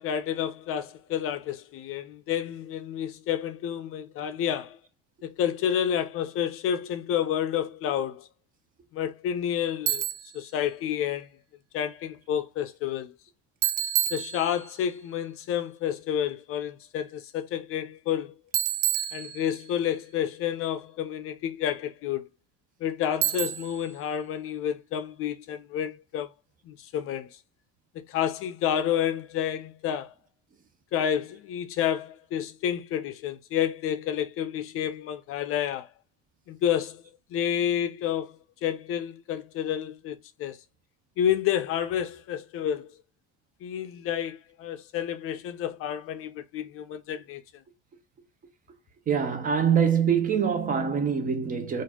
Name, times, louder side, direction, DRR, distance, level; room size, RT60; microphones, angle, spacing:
voice 1, 0.0-4.8 5.2-8.3 8.9-10.0 10.3-11.3 11.7-13.1 14.1-18.3 19.1-22.3 22.8-26.3 26.6-27.4 27.9-30.1 30.9-35.9 36.5-37.0 37.3-40.6 41.2-42.9 43.6-47.4, left 9 dB, 45° left, 0.5 m, -30 dB
Bicycle, 9.9-10.4 13.6-14.8 18.5-19.8 23.2-23.9, right 12 dB, 65° right, 0.7 m, -28 dB
voice 2, 49.1-51.8, right 7 dB, 25° right, 0.7 m, -24 dB
4.1 x 2.5 x 2.8 m
cardioid pair, 150°, 31 cm